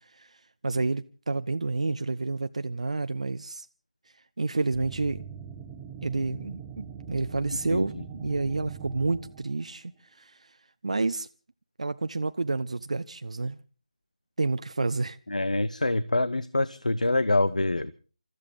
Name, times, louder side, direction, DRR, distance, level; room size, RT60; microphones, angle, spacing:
voice 1, 0.6-3.7 4.4-5.2 6.0-7.9 8.2-10.6 10.8-11.3 11.8-13.6 14.4-15.2, right 3 dB, 55° right, 0.7 m, -29 dB
sound 1, 4.7-9.8, right 7 dB, 10° right, 1.4 m, -42 dB
voice 2, 7.7-8.0 15.3-17.9, left 2 dB, 70° left, 1.0 m, -25 dB
29.0 x 14.0 x 3.6 m
figure-of-eight pair, 155°, 4 cm